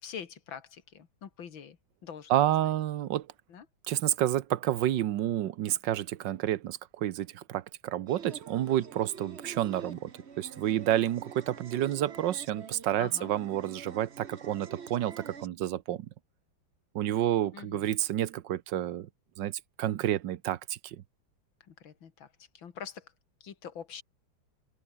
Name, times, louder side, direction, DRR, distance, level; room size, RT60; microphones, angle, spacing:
voice 1, 0.0-2.7 3.5-3.7 13.0-13.3 17.5-17.9 21.7-23.1 23.4-24.0, left 7 dB, 70° left, 2.5 m, -45 dB
voice 2, 2.3-3.3 3.9-16.1 16.9-19.1 19.4-21.0, right 12 dB, 70° right, 1.4 m, -30 dB
sound 1, 8.1-15.5, right 6 dB, 35° right, 1.4 m, -47 dB
omnidirectional pair, 2.2 m